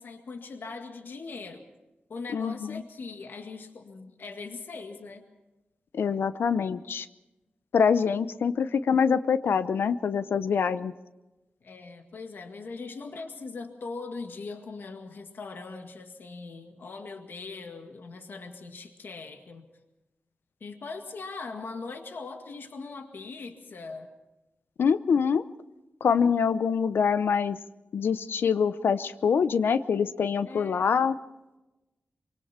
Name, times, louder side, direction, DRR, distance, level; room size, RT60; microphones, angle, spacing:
voice 1, 0.0-1.6 2.1-5.2 6.1-6.2 11.6-19.7 20.6-24.1 30.5-30.9, left 4 dB, 70° left, 5 dB, 2.0 m, -40 dB
voice 2, 2.3-2.8 5.9-7.1 7.7-10.9 24.8-25.4 26.0-27.6 27.9-31.2, left 6 dB, 90° left, 13 dB, 0.7 m, -25 dB
25.0 x 24.0 x 4.4 m, 1.0 s
wide cardioid pair, 115°, 4 cm